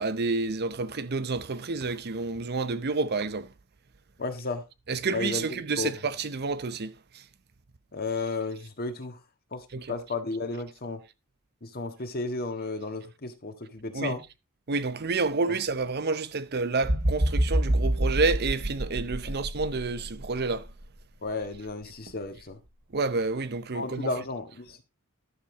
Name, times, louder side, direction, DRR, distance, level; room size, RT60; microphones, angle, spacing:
voice 1, 0.0-3.5 4.9-7.2 9.7-9.9 13.9-14.2 14.7-20.7 22.9-24.1, right 3 dB, 50° right, 0.7 m, -29 dB
voice 2, 4.2-4.6 5.1-5.4 5.8-6.0 7.9-9.2 9.5-11.0 11.6-14.2 19.2-19.3 21.2-22.6 23.7-24.8, left 3 dB, 45° left, 1.7 m, -33 dB
sound 1, 16.8-20.9 21.4-21.6, right 1 dB, 85° right, 3.1 m, -27 dB
11.5 x 6.8 x 3.9 m
head